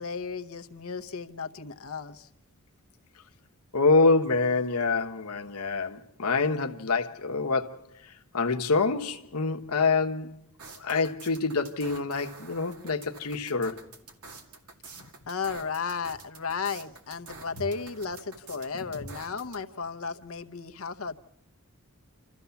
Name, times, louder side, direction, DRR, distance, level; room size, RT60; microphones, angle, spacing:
voice 1, 0.0-2.3 14.9-21.2, left 5 dB, 70° left, 0.9 m, -34 dB
voice 2, 3.7-7.8 8.0-10.3 10.8-13.8, left 3 dB, 90° left, 1.2 m, -26 dB
sound 1, 10.6-19.6, right 4 dB, 85° right, 2.2 m, -47 dB
28.0 x 14.0 x 7.0 m
head